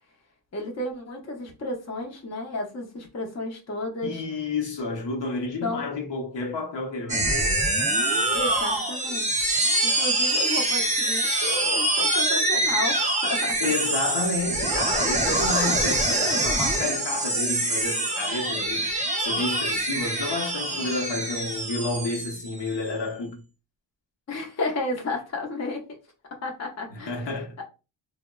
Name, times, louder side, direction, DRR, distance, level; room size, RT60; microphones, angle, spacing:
voice 1, 0.5-4.2 5.6-6.0 8.3-9.4 9.8-13.6 24.3-25.8 26.4-27.3 27.6-27.7, left 2 dB, 35° left, 0.6 m, -32 dB
voice 2, 4.0-7.7 13.6-18.9 19.2-23.4 26.9-27.6, left 3 dB, 70° left, 0.8 m, -30 dB
sound 1, 7.1-22.9, right 2 dB, 15° right, 0.4 m, -25 dB
3.5 x 2.0 x 2.2 m
wide cardioid pair, 155°, 46 cm